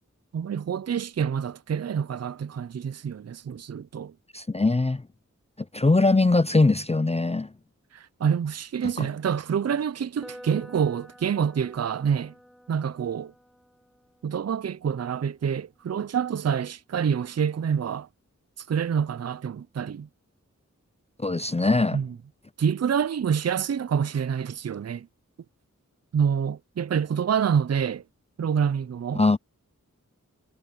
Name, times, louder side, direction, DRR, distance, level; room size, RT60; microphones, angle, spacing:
voice 1, 0.3-4.1 7.9-12.3 12.7-13.3 14.2-18.1 18.7-20.1 21.9-22.1 22.6-25.1 26.1-28.0 28.4-29.2, right 7 dB, 55° right, 0.5 m, -27 dB
voice 2, 4.3-5.0 5.7-7.5 9.0-9.1 21.2-22.0 29.1-29.4, left 3 dB, 20° left, 0.5 m, -21 dB
sound 1, 10.2-18.1, equal, ahead, 4.1 m, -52 dB
wide cardioid pair, 50°, 31 cm